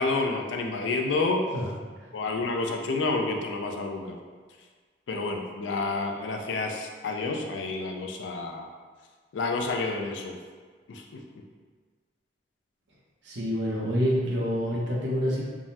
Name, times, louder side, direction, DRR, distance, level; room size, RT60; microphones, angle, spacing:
voice 1, 0.0-1.5 2.1-4.2 5.1-8.7 9.3-10.4 10.9-11.2, left 3 dB, 80° left, 2 dB, 0.4 m, -29 dB
voice 2, 13.2-15.4, equal, 75° right, -4 dB, 0.7 m, -27 dB
3.5 x 2.0 x 2.7 m, 1.5 s
head